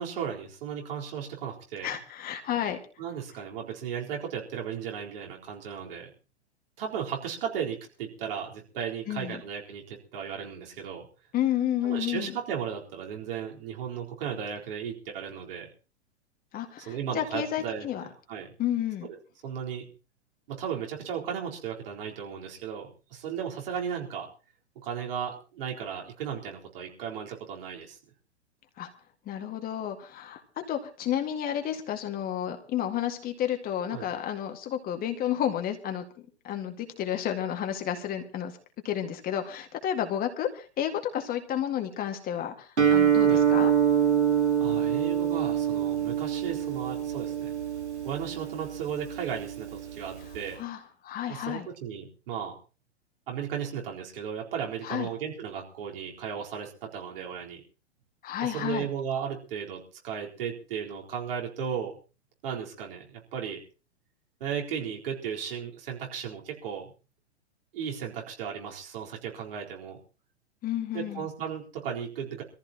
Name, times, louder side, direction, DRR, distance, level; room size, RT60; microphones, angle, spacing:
voice 1, 0.0-1.9 3.0-6.1 6.8-11.1 11.8-15.7 16.8-18.5 19.4-19.9 20.5-24.3 24.8-28.0 33.9-34.1 43.2-43.4 44.6-47.5 48.0-50.6 51.3-52.5 53.3-57.6 58.4-62.0 62.4-63.6 64.4-66.9 67.7-70.0 70.9-72.4, right 8 dB, 55° right, -1 dB, 4.3 m, -35 dB
voice 2, 1.8-2.8 9.1-9.4 11.3-12.4 16.5-18.0 18.6-19.1 28.8-28.9 29.3-30.4 30.7-36.0 36.4-38.5 38.8-43.7 50.6-51.7 54.8-55.1 58.2-58.9 70.6-71.3, left 10 dB, 25° left, 5 dB, 2.0 m, -31 dB
Guitar, 42.8-50.5, right 8 dB, 80° right, 3.3 m, -25 dB
24.5 x 14.5 x 3.0 m, 0.34 s
figure-of-eight pair, 105°, 34 cm